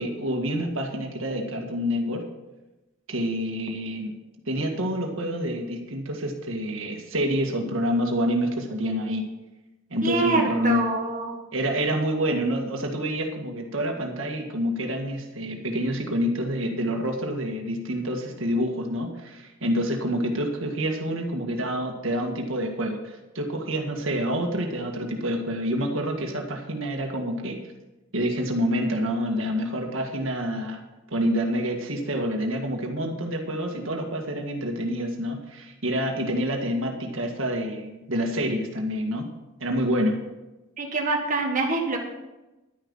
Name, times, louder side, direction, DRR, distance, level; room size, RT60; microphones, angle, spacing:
voice 1, 0.0-2.2 3.1-4.1 4.5-9.2 9.9-10.8 11.5-27.6 28.1-30.8 31.1-39.3 39.6-40.2, equal, 70° right, 2 dB, 1.9 m, -27 dB
voice 2, 10.0-11.3 40.8-42.0, right 3 dB, 40° right, -1 dB, 1.6 m, -25 dB
11.5 x 10.0 x 5.6 m, 1.0 s
head